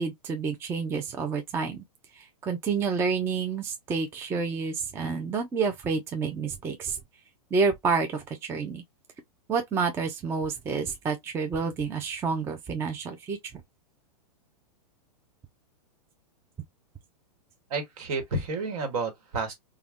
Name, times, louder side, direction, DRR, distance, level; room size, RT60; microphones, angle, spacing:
voice 1, 0.0-1.8 2.2-7.0 7.5-8.8 9.5-13.4, right 5 dB, 10° right, 0.4 m, -29 dB
voice 2, 17.7-19.5, right 3 dB, 60° right, 1.2 m, -30 dB
2.2 x 2.2 x 3.4 m
hypercardioid pair, 130°, 20 cm